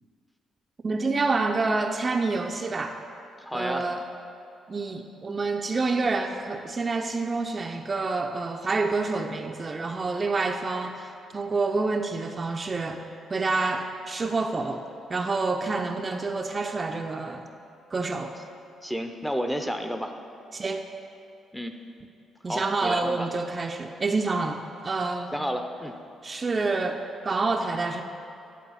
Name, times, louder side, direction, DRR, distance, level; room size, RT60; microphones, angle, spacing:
voice 1, 0.8-3.0 3.5-4.0 4.7-13.0 13.3-14.8 15.1-17.4 17.9-18.3 20.5-20.9 22.4-25.4 26.2-28.0, right 3 dB, 30° right, 4 dB, 0.5 m, -28 dB
voice 2, 3.4-3.9 18.8-20.1 21.5-21.7 22.5-23.3 25.3-25.9, equal, 5° left, 6 dB, 0.6 m, -31 dB
10.5 x 3.9 x 7.1 m, 2.7 s
cardioid pair, 90°, 0 cm